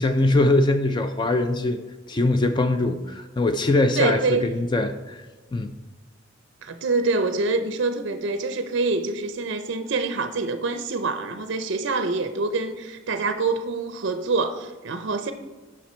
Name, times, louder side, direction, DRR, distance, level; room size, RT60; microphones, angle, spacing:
voice 1, 0.0-1.8 2.1-5.2 5.5-5.7, left 2 dB, 20° left, 0.3 m, -22 dB
voice 2, 4.0-4.5 6.6-15.3, right 3 dB, 60° right, 0.5 m, -25 dB
6.0 x 5.9 x 4.2 m
head